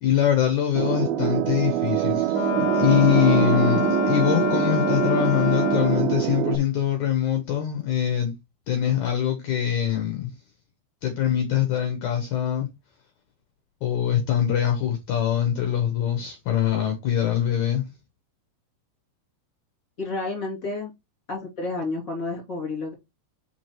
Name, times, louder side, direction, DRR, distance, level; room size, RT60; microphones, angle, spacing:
voice 1, 0.0-8.3 8.7-10.3 11.0-12.7 13.8-17.8, left 10 dB, 70° left, 1.9 m, -23 dB
sound 1, 0.8-6.6, right 13 dB, 80° right, 2.2 m, -24 dB
Wind instrument woodwind instrument, 2.3-6.2, left 6 dB, 85° left, 2.0 m, -27 dB
voice 2, 20.0-20.9 21.3-22.9, left 3 dB, 25° left, 2.8 m, -30 dB
5.4 x 4.8 x 4.5 m
omnidirectional pair, 4.9 m